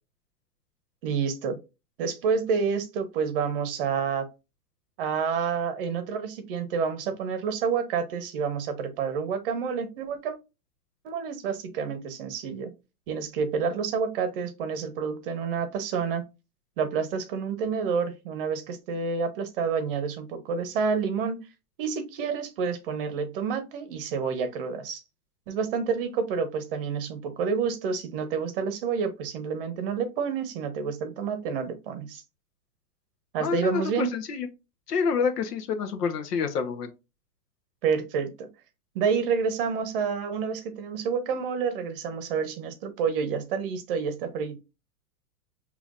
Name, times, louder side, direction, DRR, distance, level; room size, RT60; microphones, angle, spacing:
voice 1, 1.0-1.6 2.0-4.3 5.0-10.4 11.0-12.7 13.1-16.3 16.8-21.4 21.8-25.0 25.5-32.2 33.3-34.1 37.8-38.5 38.9-44.6, right 6 dB, 35° right, 0.8 m, -29 dB
voice 2, 33.4-34.5 34.9-36.9, left 6 dB, 80° left, 1.1 m, -28 dB
5.7 x 3.0 x 2.4 m
hypercardioid pair, 160°, 46 cm